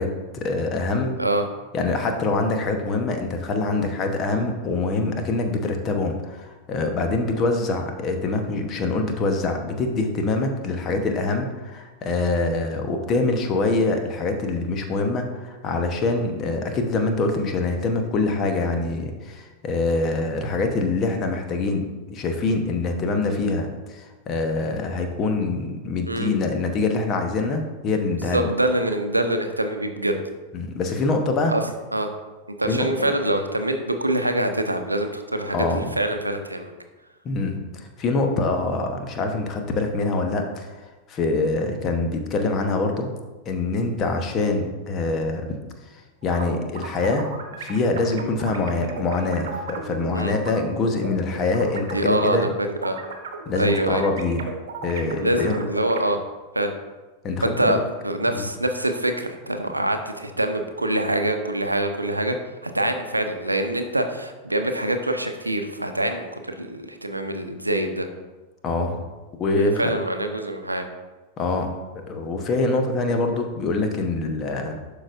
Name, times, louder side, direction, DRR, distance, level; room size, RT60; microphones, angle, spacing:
voice 1, 0.0-1.2 1.7-28.5 30.5-31.5 32.7-33.1 35.5-35.9 37.2-40.8 41.1-43.1 43.4-45.5 46.2-47.3 47.6-52.5 53.5-54.5 54.8-55.6 57.2-57.7 58.3-58.5 68.6-69.0 69.4-69.9 71.4-74.8, left 3 dB, 30° left, 5 dB, 1.0 m, -24 dB
voice 2, 28.3-30.2 31.5-31.6 31.9-32.1 32.6-36.7 50.1-50.3 51.9-53.0 53.6-54.0 55.2-56.2 56.5-56.7 57.4-57.8 58.0-62.4 62.6-68.1 69.6-70.9, right 1 dB, 85° right, 6 dB, 0.6 m, -25 dB
sound 1, 46.2-50.5 51.0-56.0, right 5 dB, 60° right, 1.0 m, -35 dB
11.5 x 4.9 x 2.6 m, 1.2 s
figure-of-eight pair, 90°, 0 cm